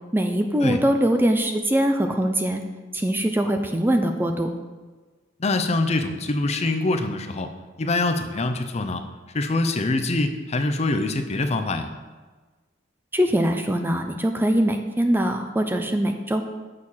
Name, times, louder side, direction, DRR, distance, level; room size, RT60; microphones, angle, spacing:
voice 1, 0.1-2.6 2.9-4.5 13.1-16.4, right 1 dB, 10° right, 5 dB, 0.5 m, -22 dB
voice 2, 5.4-7.5 7.8-9.0 9.3-11.9, left 2 dB, 35° left, 7 dB, 0.6 m, -24 dB
6.5 x 6.5 x 5.6 m, 1.3 s
head